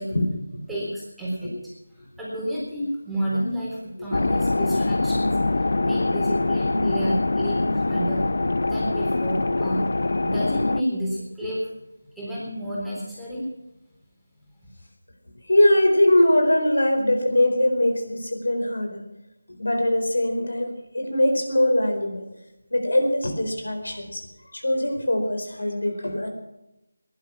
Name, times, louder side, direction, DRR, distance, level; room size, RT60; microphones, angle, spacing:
voice 1, 0.1-0.8 1.5-1.6 4.0-4.2 10.3-10.4 15.5-19.0 19.6-22.2 22.7-24.3 24.5-26.3, left 1 dB, 80° left, 5 dB, 4.5 m, -22 dB
voice 2, 0.7-5.5 5.8-8.2 8.7-9.8 10.2-11.7 12.2-13.4, equal, ahead, -10 dB, 3.9 m, -30 dB
sound 1, 4.1-10.8, left 2 dB, 60° left, 0.6 m, -23 dB
18.5 x 11.0 x 5.8 m, 0.89 s
figure-of-eight pair, 170°, 0 cm